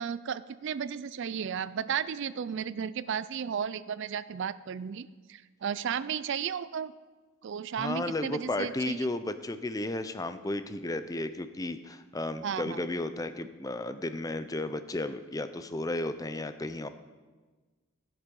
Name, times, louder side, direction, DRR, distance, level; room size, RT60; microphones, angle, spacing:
voice 1, 0.0-6.9 7.4-9.1 12.4-12.8, right 7 dB, 55° right, 16 dB, 0.3 m, -34 dB
voice 2, 7.8-16.9, left 2 dB, 15° left, 11 dB, 0.4 m, -33 dB
14.5 x 8.2 x 5.3 m, 1.3 s
head